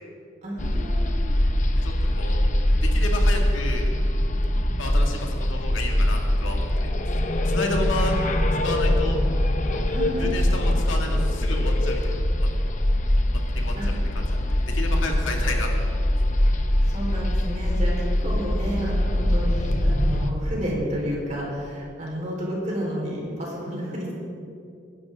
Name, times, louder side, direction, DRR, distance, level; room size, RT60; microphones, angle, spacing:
voice 1, 0.4-1.2 9.8-10.3 13.8-13.9 16.9-24.1, equal, 35° right, -4 dB, 4.2 m, -31 dB
sound 1, 0.6-20.3, left 1 dB, 40° left, 0.8 m, -23 dB
voice 2, 1.8-2.5 2.8-3.9 4.8-6.9 7.2-8.1 8.6-9.2 9.6-9.8 10.2-12.2 13.5-14.0 14.3-15.9, left 1 dB, 85° left, 1 dB, 2.1 m, -32 dB
22.0 x 11.0 x 3.7 m, 2.6 s
head